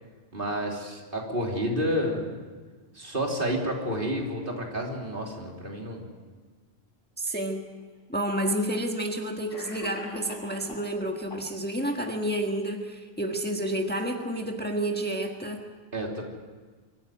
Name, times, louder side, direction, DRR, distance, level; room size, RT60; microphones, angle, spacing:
voice 1, 0.3-2.4 2.9-6.1 15.9-16.2, equal, 55° right, 0 dB, 3.5 m, -30 dB
voice 2, 7.2-7.6 8.1-15.6, right 1 dB, 10° left, 3 dB, 1.5 m, -30 dB
Cough, 7.8-7.9 8.9-9.0 9.5-10.9 11.3-11.9, left 2 dB, 60° left, 4.2 m, -43 dB
24.5 x 14.0 x 9.1 m, 1.4 s
omnidirectional pair, 1.1 m